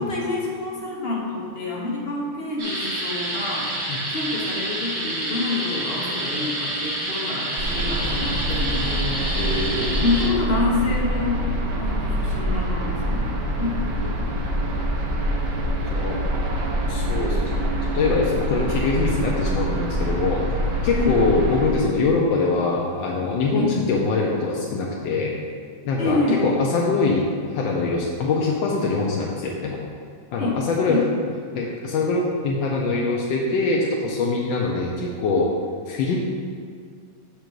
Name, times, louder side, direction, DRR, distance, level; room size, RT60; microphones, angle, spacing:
voice 1, 0.0-3.7 4.1-9.4 10.0-11.4 11.7-13.3 13.6-13.8 21.0-21.2 23.5-23.7 26.0-26.4 30.4-31.0, left 2 dB, 40° left, -4 dB, 1.0 m, -27 dB
sound 1, 2.6-10.3, right 1 dB, 50° right, 1.9 m, -28 dB
sound 2, 7.6-21.7, right 1 dB, 85° right, 0.5 m, -25 dB
voice 2, 9.3-10.1 14.1-14.2 15.9-16.2 16.9-17.4 17.9-20.4 20.8-25.3 25.8-29.8 30.3-31.0 31.5-35.5 35.9-36.2, left 3 dB, 75° left, -3 dB, 1.4 m, -23 dB
6.6 x 5.2 x 4.6 m, 2.1 s
omnidirectional pair, 2.1 m